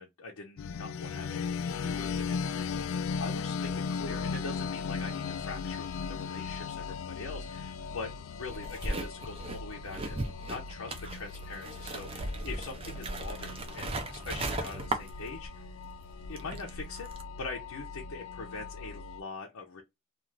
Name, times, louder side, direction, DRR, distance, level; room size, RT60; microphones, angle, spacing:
voice 1, 0.0-15.7 16.3-17.1 17.4-19.8, left 3 dB, 85° left, 0.7 m, -43 dB
sound 1, 0.6-19.2, left 5 dB, 65° left, 0.3 m, -38 dB
sound 2, 8.4-15.7 16.0-17.2, right 2 dB, 25° right, 0.5 m, -37 dB
2.5 x 2.4 x 3.1 m
head